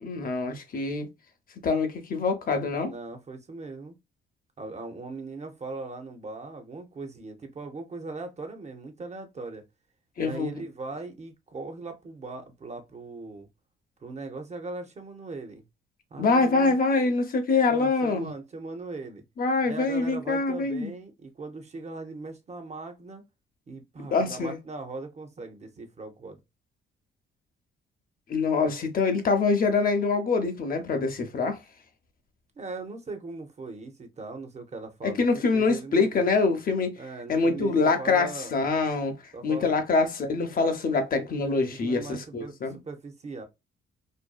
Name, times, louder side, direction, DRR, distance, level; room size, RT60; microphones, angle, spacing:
voice 1, 0.0-1.1 1.6-2.9 10.2-10.6 16.2-18.3 19.4-20.9 24.0-24.6 28.3-31.6 35.0-37.0 37.3-42.8, left 4 dB, 45° left, 0.7 m, -25 dB
voice 2, 2.8-4.0 4.6-9.6 10.2-13.5 14.0-15.6 16.1-16.8 17.7-19.2 19.6-23.2 23.7-26.4 32.6-36.3 37.0-38.5 39.3-39.7 41.8-43.4, right 3 dB, 35° right, 0.7 m, -39 dB
2.6 x 2.2 x 2.2 m
cardioid pair, 90°, 20 cm